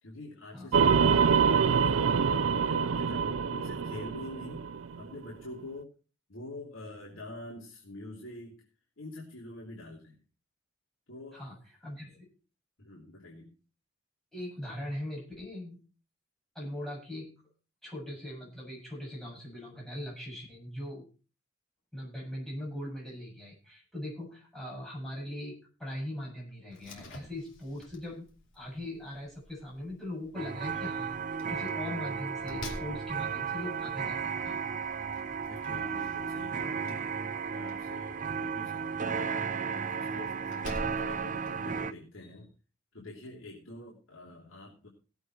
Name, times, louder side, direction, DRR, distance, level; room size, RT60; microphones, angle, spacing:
voice 1, 0.0-4.7 4.9-5.9 6.3-8.6 9.0-10.2 11.1-11.4 12.8-13.5 35.5-37.0 37.5-42.5 42.9-44.9, left 2 dB, 85° left, -4 dB, 3.1 m, -45 dB
sound 1, 0.7-5.1, right 6 dB, 85° right, 0.5 m, -25 dB
voice 2, 11.3-12.2 14.3-15.8 16.6-17.3 17.8-21.1 21.9-28.3 28.5-34.6, left 1 dB, ahead, -3 dB, 7.3 m, -40 dB
Slam, 26.7-41.8, left 1 dB, 65° left, 2.8 m, -50 dB
sound 2, 30.4-41.9, right 6 dB, 40° right, 0.6 m, -34 dB
17.5 x 8.1 x 4.4 m, 0.35 s
head